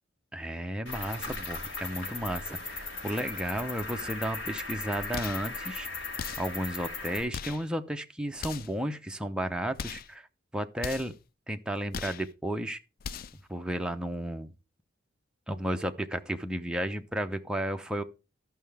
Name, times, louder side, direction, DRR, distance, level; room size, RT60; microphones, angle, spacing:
voice 1, 0.3-5.9 6.4-10.3 10.5-11.1 11.5-12.8 13.5-14.5 15.5-18.0, right 1 dB, 5° right, 0.7 m, -33 dB
Cricket, 0.9-7.2, left 3 dB, 70° left, 3.2 m, -37 dB
sound 1, 5.1-5.5 6.2-6.6 7.3-7.7 8.4-8.8 9.7-10.1 10.8-11.2 11.9-12.3 13.0-13.4, left 6 dB, 50° left, 0.4 m, -39 dB
13.5 x 5.6 x 3.4 m
head